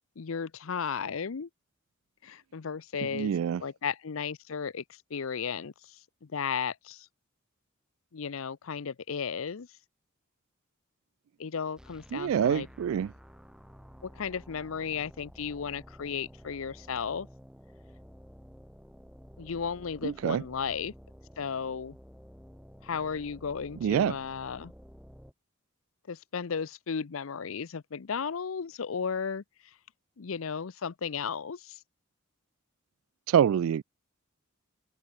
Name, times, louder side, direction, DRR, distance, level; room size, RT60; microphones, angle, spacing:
voice 1, 0.2-1.5 2.2-3.3 3.6-7.1 8.1-9.7 11.4-12.7 14.0-17.3 19.4-20.9 21.4-22.0 22.8-24.7 26.1-29.4 30.2-31.8, left 6 dB, 75° left, 0.6 m, -34 dB
voice 2, 3.1-3.6 12.1-13.1 20.0-20.4 23.8-24.2 33.3-33.8, right 8 dB, 75° right, 0.3 m, -26 dB
sound 1, 11.8-25.3, equal, 5° right, 3.1 m, -52 dB
head